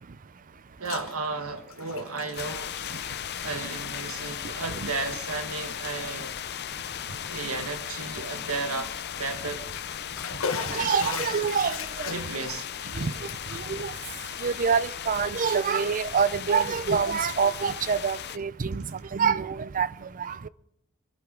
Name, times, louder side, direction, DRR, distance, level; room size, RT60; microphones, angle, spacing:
Bathtub (filling or washing), 0.5-1.1 1.4-3.5 3.8-4.1 4.8-5.0 5.6-5.7 6.2-6.3 9.4-15.6 16.0-16.8 17.1-18.4, left 6 dB, 70° left, 1.3 m, -38 dB
voice 1, 0.8-2.8 3.4-6.3 7.3-9.6 10.5-11.2 12.1-12.7, right 3 dB, 80° right, 1.7 m, -34 dB
sound 1, 2.1-11.8, left 2 dB, 30° left, 1.6 m, -53 dB
sound 2, 2.3-18.4, left 9 dB, 50° left, 0.6 m, -37 dB
voice 2, 10.7-12.1 13.0-13.9 14.4-19.9 20.2-20.5, right 6 dB, 40° right, 0.5 m, -26 dB
23.0 x 14.0 x 3.8 m
head